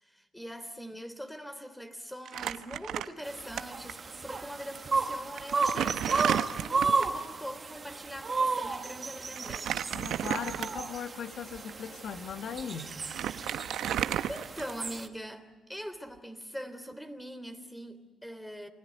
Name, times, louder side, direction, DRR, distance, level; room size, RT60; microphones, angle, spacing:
voice 1, 0.0-9.8 13.8-18.7, equal, 5° left, 3.4 m, -42 dB
Crumpling crinkling, 2.3-3.6 3.9-4.0 4.9-5.0 5.4-7.2 9.4-11.0 11.6-11.7 12.6-12.7 12.9-15.0, right 10 dB, 75° right, 1.1 m, -33 dB
sound 1, 3.2-15.1, right 4 dB, 35° right, 2.1 m, -33 dB
voice 2, 9.9-13.0, left 7 dB, 65° left, 2.2 m, -38 dB
29.0 x 21.0 x 9.5 m
cardioid pair, 90°, 0 cm